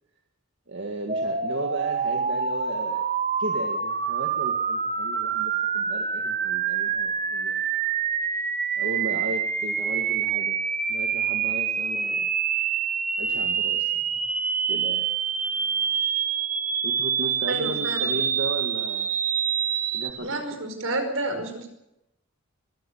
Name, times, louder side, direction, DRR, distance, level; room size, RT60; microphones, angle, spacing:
voice 1, 0.7-3.0 3.4-7.6 8.8-10.6 10.9-12.3 13.2-14.2 14.7-15.1 16.8-19.2 19.9-20.4, right 1 dB, 60° right, 2 dB, 2.1 m, -35 dB
sound 1, 1.1-20.1, right 7 dB, 40° right, 1.3 m, -26 dB
voice 2, 17.5-18.1 20.2-21.7, right 2 dB, 75° right, 5 dB, 5.2 m, -30 dB
22.0 x 14.5 x 8.3 m, 0.87 s
head